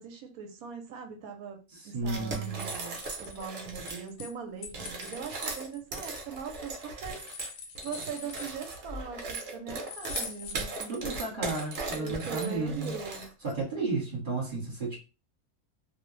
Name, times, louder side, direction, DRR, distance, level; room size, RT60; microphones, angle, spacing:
voice 1, 0.0-7.2 7.8-11.0 11.9-13.3, right 6 dB, 75° right, 4 dB, 1.0 m, -41 dB
voice 2, 1.7-2.7 10.9-12.9 13.4-15.0, right 3 dB, 40° right, -4 dB, 1.0 m, -33 dB
sound 1, 2.0-4.1 4.6-13.5, right 3 dB, 60° right, 0.7 m, -38 dB
sound 2, 2.9-4.3 4.6-6.6 7.0-8.9 9.8-10.5, left 6 dB, 85° left, 1.1 m, -44 dB
2.5 x 2.0 x 3.0 m, 0.32 s
omnidirectional pair, 1.6 m